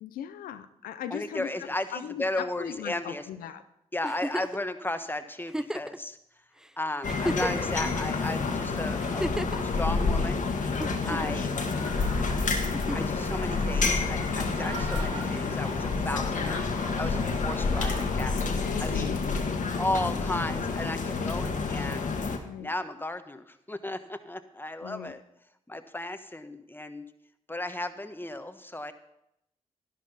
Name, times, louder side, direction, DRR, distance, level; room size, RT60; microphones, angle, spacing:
voice 1, 0.0-1.5 1.9-3.6 10.9-11.2 18.5-19.4 22.4-22.7 24.8-25.1, left 10 dB, 90° left, 11 dB, 0.6 m, -38 dB
voice 2, 1.1-3.3 3.9-6.2 6.8-10.4 11.0-11.5 12.9-19.2 19.8-22.1 22.6-25.2 25.7-27.0 27.5-28.9, left 1 dB, 15° left, 9 dB, 1.2 m, -35 dB
Giggle, 4.0-4.6 5.5-6.0 6.6-6.7 7.1-7.8 9.0-9.6 10.8-11.5 12.7-13.2 14.7-14.8, right 1 dB, 5° right, 0.5 m, -33 dB
sound 1, 7.0-22.4, left 4 dB, 65° left, 1.6 m, -29 dB
sound 2, 10.5-18.1, right 2 dB, 40° right, 2.8 m, -44 dB
11.0 x 11.0 x 4.1 m, 0.82 s
supercardioid pair, 45°, 14 cm